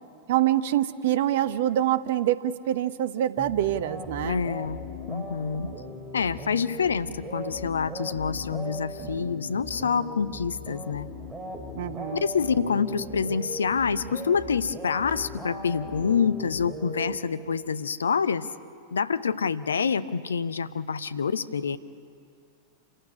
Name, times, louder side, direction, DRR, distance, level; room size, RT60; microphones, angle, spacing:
voice 1, 0.3-4.4 11.7-12.2, right 12 dB, 55° right, 15 dB, 0.9 m, -25 dB
sound 1, 3.4-17.7, left 1 dB, 10° right, 3.4 m, -38 dB
voice 2, 4.2-4.8 5.1-5.7 6.1-11.1 12.2-18.5 18.9-21.8, left 6 dB, 70° left, 14 dB, 0.7 m, -27 dB
27.5 x 15.5 x 10.0 m, 2.4 s
figure-of-eight pair, 90°, 0 cm